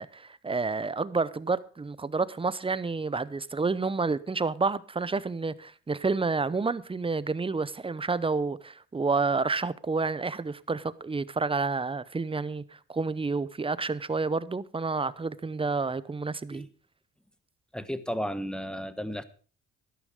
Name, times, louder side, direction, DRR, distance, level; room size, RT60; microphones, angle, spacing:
voice 1, 0.0-16.7, right 4 dB, 20° right, 0.7 m, -29 dB
voice 2, 17.7-19.2, equal, 5° left, 1.2 m, -33 dB
12.5 x 11.5 x 4.9 m
cardioid pair, 90°, 30 cm